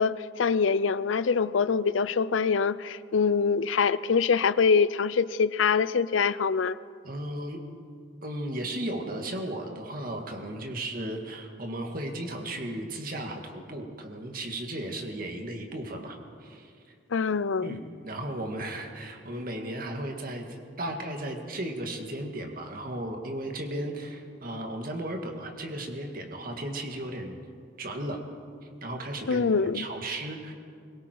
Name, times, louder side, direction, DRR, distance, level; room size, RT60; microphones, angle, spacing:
voice 1, 0.0-6.8 17.1-17.8 29.3-29.8, left 5 dB, 90° left, 0.5 m, -24 dB
voice 2, 7.0-7.6 8.2-16.7 17.6-27.4 27.8-28.2 28.8-30.5, right 1 dB, 50° right, 2.2 m, -35 dB
24.5 x 23.0 x 4.7 m
head